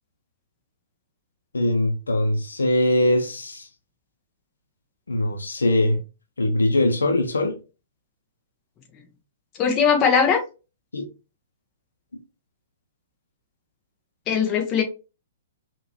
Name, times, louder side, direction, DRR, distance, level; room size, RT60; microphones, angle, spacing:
voice 1, 1.5-3.7 5.1-6.0 6.4-7.6 10.9-11.1, left 1 dB, 85° left, 1.1 m, -22 dB
voice 2, 9.6-10.4 14.3-14.8, left 6 dB, 30° left, 1.2 m, -19 dB
5.4 x 2.8 x 3.0 m
hypercardioid pair, 125°, 0 cm